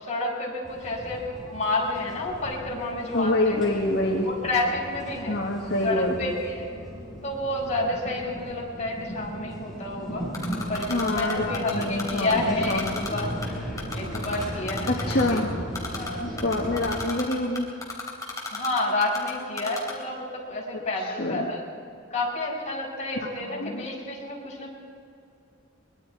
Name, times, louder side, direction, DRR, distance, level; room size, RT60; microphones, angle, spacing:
voice 1, 0.0-3.6 4.2-5.4 5.8-6.7 7.2-13.3 13.9-15.4 15.9-16.3 18.5-21.6 22.1-24.7, left 2 dB, 35° left, -3 dB, 5.7 m, -30 dB
sound 1, 0.6-17.1, equal, ahead, 7.2 m, -36 dB
voice 2, 3.1-4.3 5.3-6.3 10.9-13.1 14.9-15.6 16.2-17.7 21.0-21.5 23.2-23.8, left 1 dB, 55° left, -1 dB, 1.8 m, -26 dB
Typing, 10.3-12.3 12.6-13.5 13.8-15.4 15.7-16.1 16.4-19.3 19.6-19.9, left 3 dB, 15° left, 3.5 m, -33 dB
24.0 x 22.0 x 4.8 m, 2.5 s
head